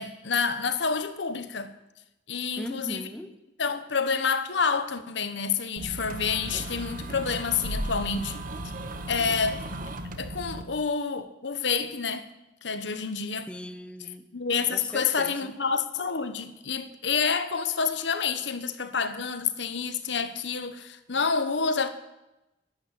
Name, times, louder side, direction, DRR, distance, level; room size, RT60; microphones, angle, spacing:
voice 1, 0.0-1.7 2.3-3.0 3.6-8.4 9.1-9.6 10.2-12.3 12.6-13.5 14.3-21.9, left 5 dB, 70° left, 1.1 m, -28 dB
voice 2, 2.6-3.4 13.5-14.3 14.7-15.6, left 1 dB, 5° left, 0.8 m, -39 dB
sound 1, 5.8-10.6, right 1 dB, 50° right, 1.4 m, -35 dB
11.5 x 11.5 x 8.4 m
head